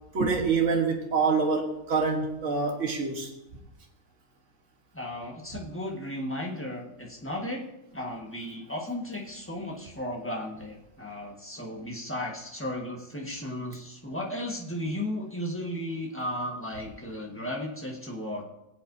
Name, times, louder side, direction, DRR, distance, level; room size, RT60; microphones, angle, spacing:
voice 1, 0.1-3.3, right 4 dB, 55° right, 2 dB, 1.8 m, -26 dB
voice 2, 4.9-7.7 7.9-18.4, left 1 dB, 10° left, -1 dB, 1.5 m, -35 dB
23.0 x 7.8 x 2.7 m, 0.92 s
omnidirectional pair, 1.6 m